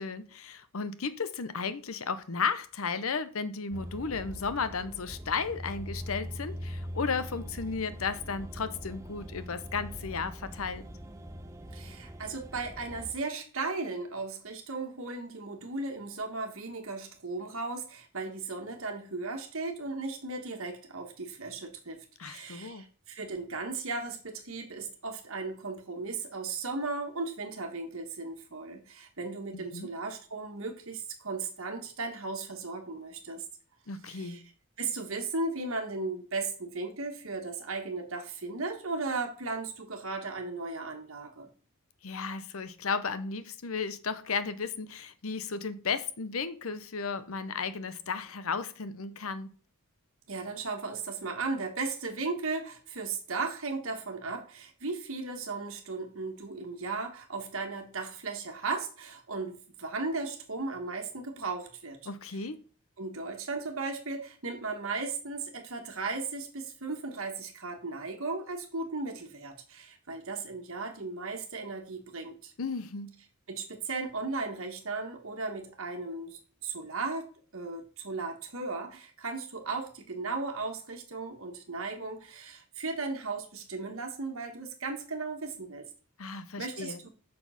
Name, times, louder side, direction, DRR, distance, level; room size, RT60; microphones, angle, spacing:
voice 1, 0.0-10.9 22.2-22.9 29.5-29.9 33.9-34.5 42.0-49.5 62.1-62.6 72.6-73.1 86.2-87.0, left 5 dB, 75° left, 0.8 m, -34 dB
sound 1, 3.7-13.1, equal, 15° right, 0.8 m, -42 dB
voice 2, 11.7-33.4 34.1-34.4 34.8-41.5 50.3-62.0 63.0-72.5 73.5-77.3 77.5-85.8 86.6-87.1, right 3 dB, 65° right, 1.4 m, -36 dB
7.3 x 6.2 x 5.7 m
head